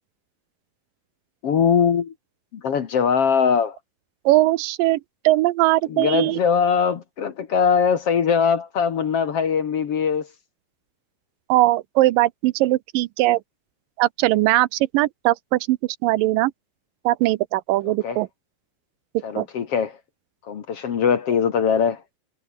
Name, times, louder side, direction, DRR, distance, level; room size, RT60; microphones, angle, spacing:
voice 1, 1.4-2.1 2.5-3.8 5.9-10.3 17.9-18.2 19.2-20.0 20.5-22.0, left 6 dB, 50° left, 2.1 m, -21 dB
voice 2, 4.3-6.4 11.5-13.4 14.0-16.5 17.1-18.3 19.4-19.5, right 17 dB, 85° right, 2.3 m, -20 dB
omnidirectional pair, 4.1 m